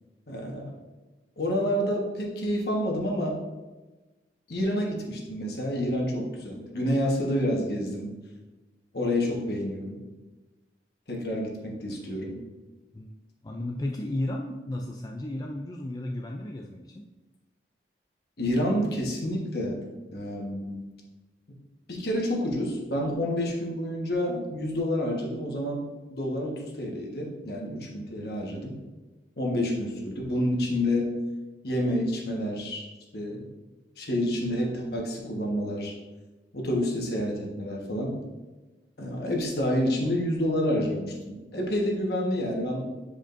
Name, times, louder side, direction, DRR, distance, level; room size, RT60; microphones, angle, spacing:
voice 1, 0.3-0.7 1.4-3.4 4.5-8.1 8.9-10.0 11.1-12.4 18.4-19.8 20.1-20.8 21.9-28.8 29.4-31.1 31.6-32.9 33.1-33.5 34.0-35.9 36.5-38.2 39.0-42.8, left 1 dB, 60° left, -1 dB, 1.4 m, -28 dB
voice 2, 13.4-17.1, left 1 dB, 20° left, 1 dB, 0.3 m, -34 dB
9.0 x 5.0 x 2.6 m, 1.2 s
head